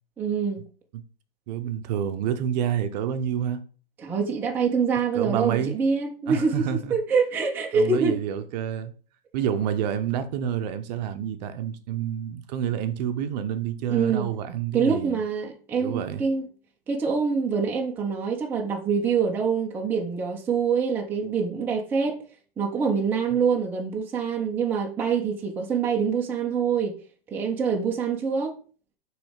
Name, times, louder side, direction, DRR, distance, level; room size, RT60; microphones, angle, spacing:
voice 1, 0.2-0.6 4.0-8.2 13.9-14.3 14.7-16.4 16.9-22.2 22.6-26.9 27.3-28.5, right 5 dB, 5° right, 0.4 m, -25 dB
voice 2, 1.5-3.6 5.1-5.8 6.3-6.9 7.7-8.9 9.3-15.2 15.8-16.2, right 9 dB, 45° right, 0.6 m, -28 dB
6.0 x 3.2 x 5.0 m
hypercardioid pair, 145°, 29 cm